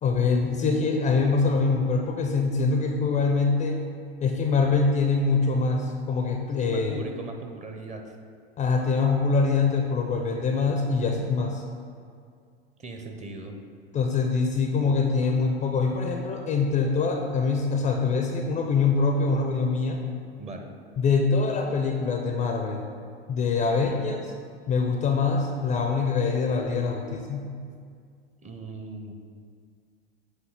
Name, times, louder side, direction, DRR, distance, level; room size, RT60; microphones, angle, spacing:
voice 1, 0.0-3.8 4.2-7.0 8.6-11.6 13.9-20.0 21.0-22.9 23.3-24.3 24.7-27.5, left 4 dB, 20° left, 2 dB, 0.5 m, -24 dB
voice 2, 6.6-8.1 12.8-13.6 20.4-20.7 28.4-29.1, right 2 dB, 20° right, 3 dB, 0.7 m, -39 dB
7.9 x 2.7 x 5.8 m, 2.2 s
hypercardioid pair, 100°, 32 cm